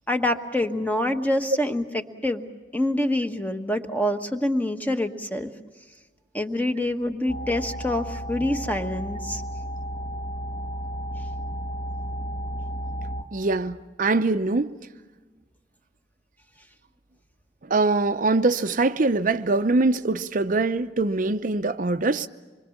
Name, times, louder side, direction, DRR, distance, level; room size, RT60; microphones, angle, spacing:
voice 1, 0.1-2.5 2.7-5.5 6.3-9.4, left 1 dB, 10° left, 1.3 m, -26 dB
sound 1, 7.3-13.2, equal, 35° left, 2.0 m, -33 dB
voice 2, 13.3-14.7 17.7-22.3, right 3 dB, 50° right, 0.7 m, -23 dB
26.0 x 24.0 x 7.2 m
head